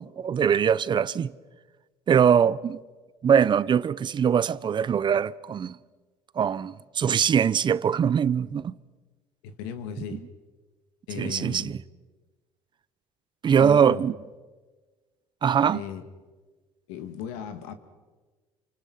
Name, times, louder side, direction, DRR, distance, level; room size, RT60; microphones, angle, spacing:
voice 1, 0.0-1.3 2.1-2.8 3.2-5.8 6.4-8.8 11.2-11.8 13.4-14.1 15.4-15.8, right 7 dB, 40° right, 0.8 m, -22 dB
voice 2, 9.4-10.2 11.1-11.7 13.6-14.1 15.7-16.1 16.9-17.8, left 8 dB, 85° left, 2.2 m, -36 dB
29.0 x 25.5 x 5.6 m
supercardioid pair, 85°, 12 cm